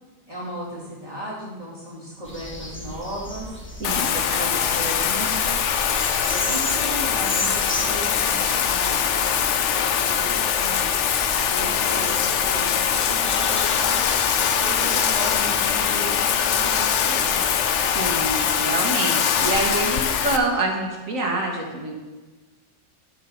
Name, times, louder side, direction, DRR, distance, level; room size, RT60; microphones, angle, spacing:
voice 1, 0.3-3.5 3.9-5.6 6.2-10.9 11.2-14.3 14.6-17.6, right 1 dB, 30° right, -11 dB, 2.9 m, -36 dB
sound 1, 2.2-18.6, equal, 10° left, 1.2 m, -36 dB
Bathtub (filling or washing), 3.8-20.4, left 8 dB, 65° left, 1.0 m, -22 dB
voice 2, 3.8-4.4 17.8-21.9, right 2 dB, 90° right, 0 dB, 2.1 m, -26 dB
13.0 x 4.6 x 5.6 m, 1.2 s
omnidirectional pair, 1.3 m